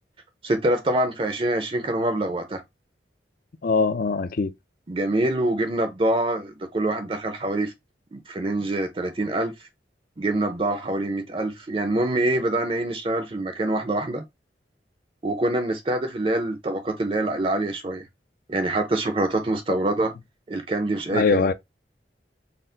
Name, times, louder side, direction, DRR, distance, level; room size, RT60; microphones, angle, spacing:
voice 1, 0.4-2.6 4.9-7.7 8.1-9.5 10.2-14.2 15.2-18.0 18.5-20.1 20.5-21.4, right 1 dB, 30° right, 0.5 m, -25 dB
voice 2, 3.6-4.5 21.1-21.5, left 4 dB, 55° left, 0.4 m, -22 dB
4.3 x 2.0 x 3.8 m
head